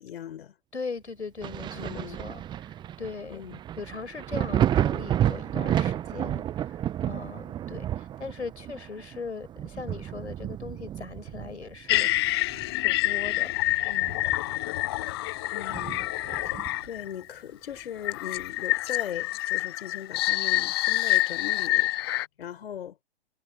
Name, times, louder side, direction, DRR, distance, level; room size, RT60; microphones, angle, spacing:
voice 1, 0.0-0.5 1.7-2.2 3.3-3.6 15.5-16.1 16.4-21.9 22.4-23.0, left 9 dB, 60° left, 4.6 m, -39 dB
voice 2, 0.7-2.7 3.0-3.4 3.8-6.8 7.1-12.3 12.7-13.5 13.9-14.2, left 4 dB, 80° left, 6.3 m, -39 dB
Thunder, 1.4-12.8 13.2-14.7 15.0-15.1 15.7-17.0 18.4-18.5, right 11 dB, 15° right, 0.7 m, -31 dB
sound 1, 11.9-17.1 18.0-22.3, left 17 dB, 25° left, 0.4 m, -27 dB
figure-of-eight pair, 120°, 34 cm